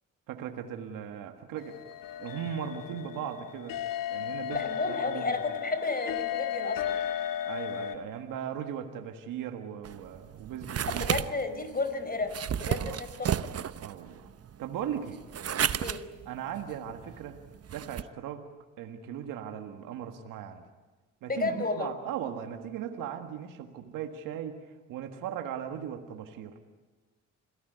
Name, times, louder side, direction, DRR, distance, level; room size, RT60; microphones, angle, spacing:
voice 1, 0.3-1.8 2.2-3.8 4.1-5.4 7.5-11.1 12.8-13.0 13.8-14.3 14.6-15.2 16.3-17.4 17.7-18.4 18.8-20.7 21.2-26.5, right 9 dB, 90° right, 5 dB, 1.8 m, -38 dB
sound 1, 1.6-8.0, left 10 dB, 90° left, 1.8 m, -35 dB
voice 2, 4.5-7.0 10.9-13.4 15.8-16.0 21.3-21.9, left 3 dB, 30° left, 9 dB, 4.7 m, -32 dB
sound 2, 9.8-18.0, right 9 dB, 50° right, 0.9 m, -34 dB
27.5 x 17.5 x 9.3 m, 1.2 s
cardioid pair, 75°, 32 cm